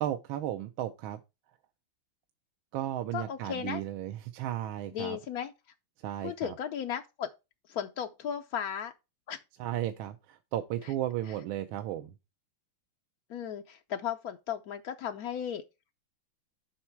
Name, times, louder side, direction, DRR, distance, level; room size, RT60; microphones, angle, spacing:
voice 1, 0.0-1.2 2.7-5.2 6.0-6.6 9.6-12.1, right 12 dB, 80° right, 1.4 m, -34 dB
voice 2, 3.1-3.8 4.9-5.5 6.2-7.3 7.7-8.9 9.3-9.4 13.3-15.6, left 8 dB, 80° left, 0.8 m, -35 dB
7.2 x 5.4 x 4.5 m
omnidirectional pair, 2.3 m